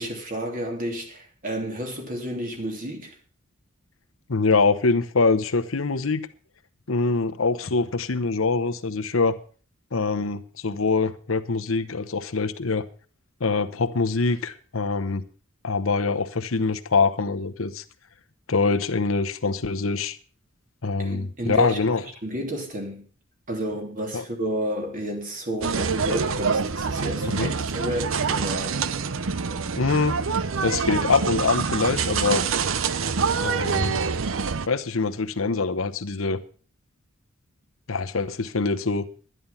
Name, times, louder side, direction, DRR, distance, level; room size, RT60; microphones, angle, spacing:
voice 1, 0.0-3.1 21.0-21.8 22.2-23.0 23.5-28.8, right 1 dB, 45° right, 3.1 m, -31 dB
voice 2, 4.3-6.3 6.9-9.3 9.9-12.8 13.4-15.2 15.6-17.8 18.5-20.2 20.8-22.0 24.1-24.2 27.4-27.5 29.8-30.2 30.6-32.4 33.4-34.0 34.7-36.4 37.9-39.1, left 4 dB, 90° left, 0.9 m, -24 dB
sound 1, 25.6-34.7, right 5 dB, 80° right, 0.7 m, -26 dB
11.5 x 11.0 x 5.6 m
head